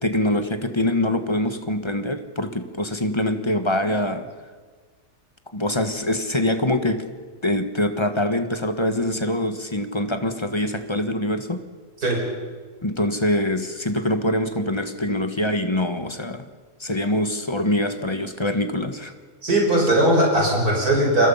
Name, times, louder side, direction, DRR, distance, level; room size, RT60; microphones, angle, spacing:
voice 1, 0.0-4.3 5.5-7.0 7.4-11.6 12.8-16.5 16.8-19.1, left 1 dB, 20° left, 8 dB, 1.4 m, -24 dB
voice 2, 19.4-21.3, right 1 dB, 75° right, -1 dB, 6.0 m, -19 dB
29.5 x 22.5 x 5.7 m, 1.5 s
omnidirectional pair, 1.6 m